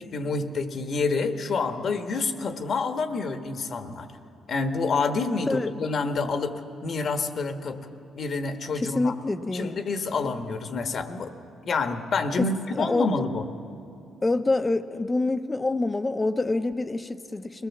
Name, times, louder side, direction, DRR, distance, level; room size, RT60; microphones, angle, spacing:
voice 1, 0.1-4.1 4.5-6.5 6.8-7.8 8.1-9.1 9.5-11.3 11.6-13.4, left 4 dB, 55° left, 7 dB, 1.4 m, -28 dB
voice 2, 8.7-9.7 12.4-13.2 14.2-17.7, left 2 dB, 20° left, 10 dB, 0.9 m, -26 dB
21.5 x 18.0 x 7.3 m, 2.7 s
cardioid pair, 90°, 0 cm